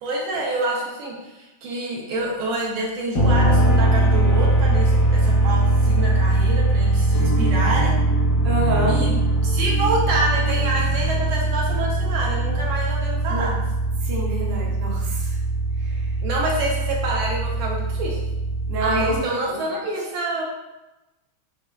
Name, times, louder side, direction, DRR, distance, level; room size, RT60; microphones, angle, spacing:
voice 1, 0.0-8.0 8.8-13.5 16.2-18.2 18.8-20.4, right 2 dB, 75° right, -3 dB, 1.4 m, -27 dB
sound 1, 3.1-19.2, right 2 dB, 65° left, 0.8 m, -21 dB
sound 2, 7.1-13.3, equal, 80° left, 1.5 m, -32 dB
voice 2, 8.4-9.0 13.3-13.5 14.1-15.3 18.7-19.2 19.5-19.6, right 1 dB, 60° right, -3 dB, 1.1 m, -27 dB
4.5 x 3.2 x 2.3 m, 1.0 s
omnidirectional pair, 2.4 m